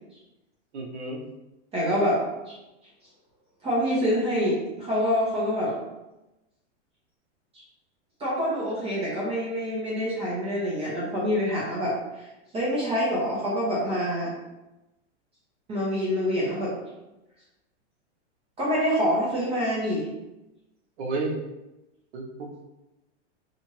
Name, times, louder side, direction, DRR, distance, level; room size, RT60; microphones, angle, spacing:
voice 1, 0.7-1.2 21.0-21.4 22.1-22.6, right 3 dB, 65° right, 1 dB, 0.8 m, -31 dB
voice 2, 1.7-2.2 2.5-2.6 3.6-5.7 7.5-7.6 8.2-12.3 12.5-14.3 15.7-16.7 18.6-20.1, equal, 15° right, -6 dB, 0.6 m, -26 dB
2.8 x 2.5 x 3.1 m, 0.99 s
supercardioid pair, 140°, 36 cm